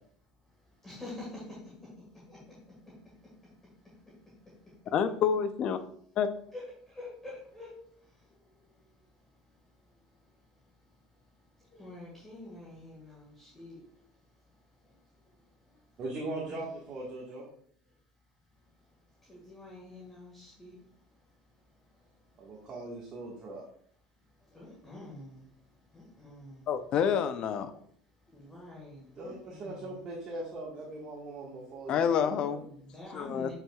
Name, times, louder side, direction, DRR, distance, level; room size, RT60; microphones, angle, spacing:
voice 1, 0.4-4.8 6.5-16.0 16.4-16.6 17.9-18.0 18.5-22.7 24.2-26.7 28.1-30.1 32.5-33.5, left 2 dB, 15° left, -5 dB, 1.8 m, -50 dB
voice 2, 4.9-5.8 6.2-6.3 26.7-27.7 31.9-32.6 33.1-33.5, left 7 dB, 40° left, 9 dB, 0.6 m, -28 dB
voice 3, 16.0-17.4 22.4-23.6 29.1-32.6, right 2 dB, 35° right, -5 dB, 1.5 m, -40 dB
7.4 x 5.5 x 2.3 m, 0.62 s
supercardioid pair, 135°, 2 cm